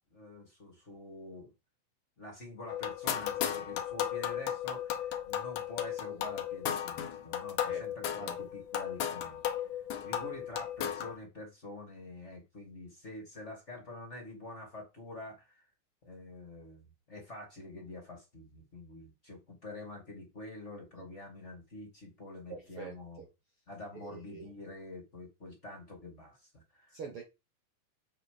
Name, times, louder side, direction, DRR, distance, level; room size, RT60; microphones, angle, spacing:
voice 1, 0.0-1.5 2.2-9.4 10.0-15.6 16.0-23.2 23.7-27.0, left 2 dB, 25° left, 2.0 m, -47 dB
sound 1, 2.7-11.2, left 10 dB, 75° left, 2.5 m, -35 dB
voice 2, 22.5-23.3 23.9-24.5 26.9-27.2, right 5 dB, 55° right, 1.6 m, -45 dB
6.9 x 6.8 x 5.0 m
omnidirectional pair, 3.8 m